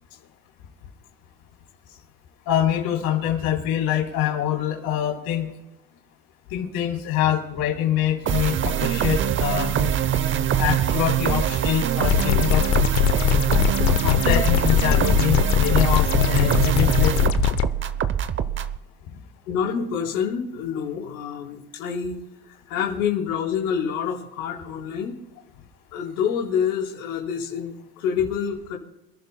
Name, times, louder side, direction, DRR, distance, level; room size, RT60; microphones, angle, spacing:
voice 1, 2.5-5.5 6.5-9.7 10.6-12.6 14.0-17.3, left 10 dB, 55° left, -1 dB, 3.5 m, -25 dB
sound 1, 8.3-18.8, right 9 dB, 30° right, 0.7 m, -23 dB
sound 2, 12.1-17.6, left 12 dB, 40° left, 0.8 m, -21 dB
voice 2, 19.5-22.2 22.5-25.2 25.9-28.8, left 7 dB, 80° left, -1 dB, 3.9 m, -27 dB
28.0 x 11.5 x 2.2 m, 0.95 s
supercardioid pair, 100°, 43 cm